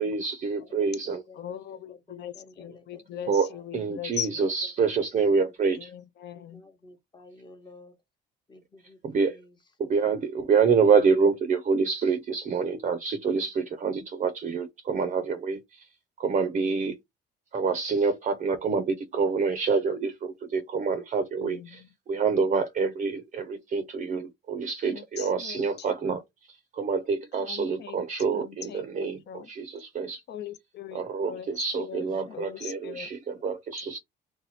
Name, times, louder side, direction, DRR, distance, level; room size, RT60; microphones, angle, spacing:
voice 1, 0.0-1.2 3.3-5.9 9.0-9.4 9.8-15.9 16.2-17.0 17.5-26.2 26.5-30.2 30.9-34.0, right 5 dB, 35° right, 0.5 m, -27 dB
voice 2, 0.6-3.6 5.4-5.5 6.3-8.0 8.5-9.5 31.2-31.6 32.0-32.7 32.9-33.5 33.8-34.0, left 2 dB, 20° left, 0.9 m, -52 dB
voice 3, 1.3-4.4 5.7-6.6 21.4-21.9 24.9-25.9 27.4-28.0 28.3-29.5 30.3-33.1, left 10 dB, 55° left, 0.6 m, -40 dB
2.8 x 2.2 x 4.0 m
cardioid pair, 100°, 21 cm